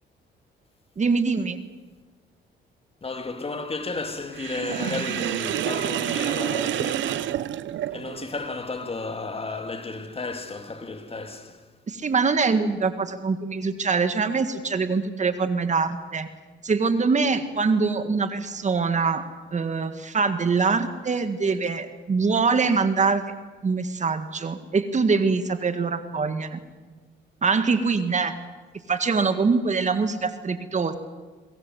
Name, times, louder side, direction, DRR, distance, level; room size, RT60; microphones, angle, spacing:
voice 1, 1.0-1.6 11.9-16.3 16.6-19.2 19.5-23.2 23.6-26.6 27.4-28.3 28.9-30.9, right 4 dB, 35° right, 1.8 m, -24 dB
voice 2, 3.0-7.6 7.9-11.7, left 3 dB, 30° left, 2.3 m, -33 dB
Sink (filling or washing), 4.4-8.3, right 12 dB, 75° right, 0.7 m, -28 dB
24.0 x 21.0 x 7.6 m
cardioid pair, 90°, 20 cm